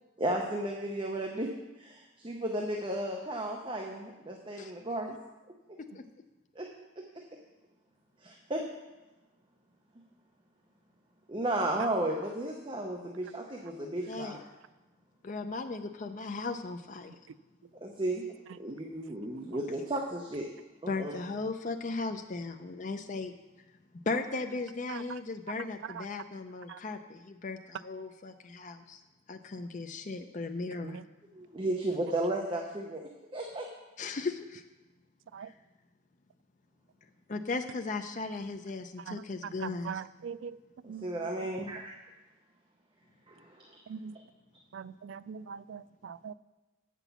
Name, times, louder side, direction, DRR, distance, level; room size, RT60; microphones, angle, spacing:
voice 1, 0.2-1.5 1.8-5.2 5.7-5.8 6.6-6.7 7.0-7.1 8.2-8.6 11.3-14.4 17.8-18.2 18.6-20.5 20.8-21.1 31.3-33.7 40.8-41.9 43.3-43.7, right 1 dB, 25° right, 1 dB, 0.7 m, -34 dB
voice 2, 13.7-14.4 15.2-17.2 20.9-23.3 24.1-29.0 29.3-31.0 34.0-34.6 35.5-35.6 37.3-40.0, left 3 dB, 35° left, 6 dB, 0.4 m, -37 dB
voice 3, 39.6-40.5 40.9-41.1 43.9-44.1 44.7-46.3, right 7 dB, 65° right, 16 dB, 0.3 m, -41 dB
8.1 x 6.0 x 6.9 m, 1.1 s
head